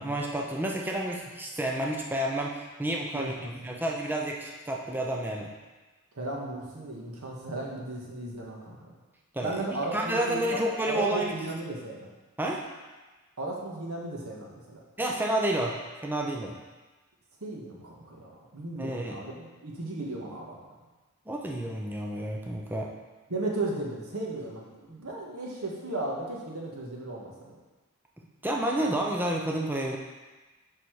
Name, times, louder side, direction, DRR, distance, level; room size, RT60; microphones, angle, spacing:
voice 1, 0.0-3.3 3.6-5.5 9.3-9.6 9.9-11.5 12.4-12.6 15.0-16.6 18.8-19.2 21.3-22.9 28.4-30.0, right 1 dB, 10° right, -1 dB, 0.6 m, -30 dB
voice 2, 3.1-3.5 6.1-8.9 9.4-12.1 13.4-14.8 17.4-20.7 23.3-27.6, right 2 dB, 75° right, -3 dB, 1.6 m, -35 dB
6.7 x 5.7 x 4.8 m, 1.2 s
head